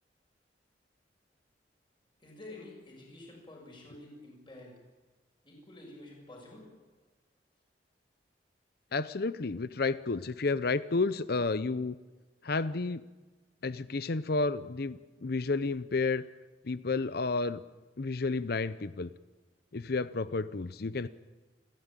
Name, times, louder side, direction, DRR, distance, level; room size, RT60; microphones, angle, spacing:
voice 1, 2.2-4.8 5.4-6.7, left 2 dB, 30° left, -1 dB, 7.3 m, -49 dB
voice 2, 8.9-11.9 12.4-13.0 13.6-16.2 16.7-17.6 18.0-19.1 19.7-21.1, left 3 dB, 60° left, 15 dB, 0.7 m, -31 dB
29.0 x 15.0 x 9.0 m, 1.2 s
head